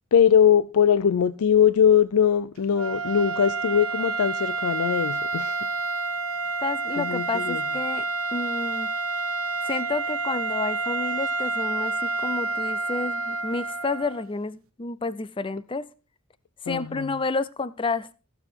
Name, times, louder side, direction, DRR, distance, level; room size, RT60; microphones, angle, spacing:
voice 1, 0.1-5.6 7.0-7.6 16.7-17.1, left 8 dB, 80° left, 0.4 m, -21 dB
sound 1, 2.7-14.3, right 3 dB, 65° right, 1.1 m, -29 dB
voice 2, 6.6-8.1 8.3-8.9 9.6-15.9 16.6-18.1, left 3 dB, 25° left, 0.5 m, -30 dB
15.0 x 7.1 x 4.5 m
head